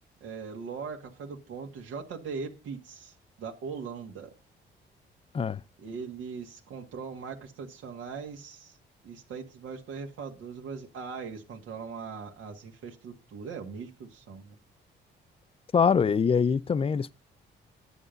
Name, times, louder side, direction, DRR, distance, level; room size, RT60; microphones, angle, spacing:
voice 1, 0.2-4.3 5.8-8.8 9.0-14.6, right 5 dB, 85° right, 1.9 m, -40 dB
voice 2, 15.7-17.1, left 6 dB, 30° left, 0.5 m, -24 dB
9.9 x 7.5 x 5.1 m
cardioid pair, 90°, 20 cm